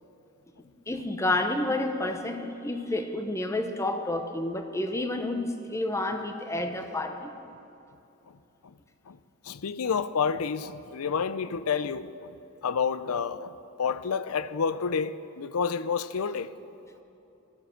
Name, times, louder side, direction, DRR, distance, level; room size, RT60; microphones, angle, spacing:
voice 1, 0.9-7.3, left 2 dB, 15° left, 0.8 m, -30 dB
voice 2, 9.4-12.3 12.6-16.5, left 6 dB, 85° left, 0.5 m, -29 dB
14.5 x 12.5 x 6.5 m
head